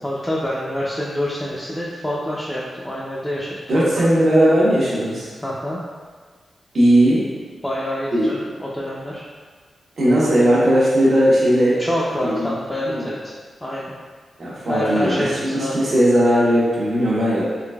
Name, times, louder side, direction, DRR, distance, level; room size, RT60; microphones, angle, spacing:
voice 1, 0.0-3.5 3.7-3.8 5.4-5.8 7.6-9.3 11.8-13.9 14.7-15.7, equal, 5° left, -7 dB, 0.4 m, -26 dB
voice 2, 3.7-5.3 6.7-7.3 8.1-8.3 10.0-12.5 12.8-13.1 14.4-17.4, equal, 55° right, -7 dB, 1.0 m, -17 dB
3.7 x 3.4 x 2.2 m, 1.5 s
wide cardioid pair, 125°, 0 cm